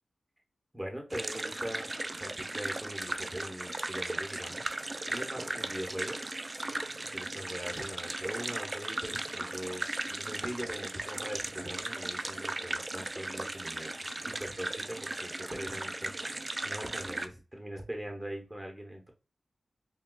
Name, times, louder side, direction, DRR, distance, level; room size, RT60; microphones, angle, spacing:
voice 1, 0.7-1.9 2.2-4.6 5.1-6.2 6.6-13.9 14.3-16.1 16.6-19.1, equal, 15° right, 2 dB, 1.0 m, -41 dB
sound 1, 1.1-17.3, right 2 dB, 30° right, 0.3 m, -37 dB
5.9 x 2.2 x 2.3 m, 0.32 s
wide cardioid pair, 110°, 0 cm